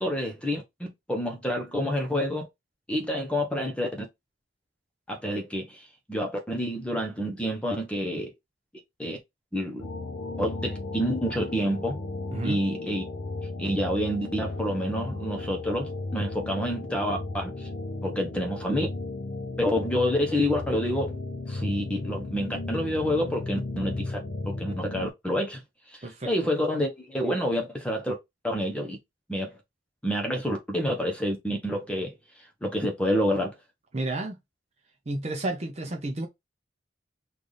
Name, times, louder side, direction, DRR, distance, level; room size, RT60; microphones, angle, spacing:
voice 1, 0.0-2.5 2.9-4.1 5.1-8.3 9.0-9.2 9.5-9.9 10.4-12.0 12.4-13.0 13.6-17.7 18.0-18.9 19.6-21.1 21.5-24.2 24.4-25.6 26.0-28.1 28.4-29.0 29.3-29.6 30.0-32.1 32.6-33.5, equal, 5° left, 0.9 m, -28 dB
sound 1, 9.8-25.1, left 2 dB, 60° left, 0.6 m, -35 dB
voice 2, 33.9-34.4 35.1-36.3, right 2 dB, 35° right, 0.5 m, -31 dB
3.3 x 2.5 x 3.9 m
head